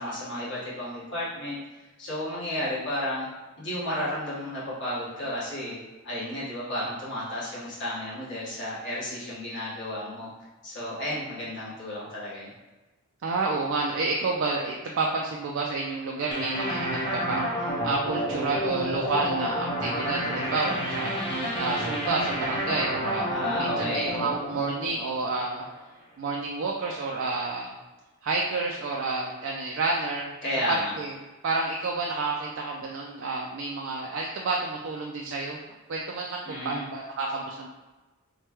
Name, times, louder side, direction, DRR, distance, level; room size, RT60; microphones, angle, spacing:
voice 1, 0.0-1.6 2.0-3.3 3.6-5.8 6.0-10.3 10.6-12.5 23.3-24.1 30.4-30.9 36.4-36.9, left 1 dB, 55° left, -9 dB, 1.5 m, -32 dB
voice 2, 13.2-17.5 17.8-23.3 23.6-25.6 26.2-27.7 28.2-30.3 30.7-31.1 31.4-35.6 35.9-37.7, right 3 dB, 60° right, -1 dB, 0.4 m, -29 dB
sound 1, 16.3-25.7, equal, 25° left, 0.6 m, -30 dB
4.5 x 2.2 x 3.0 m, 1.2 s
head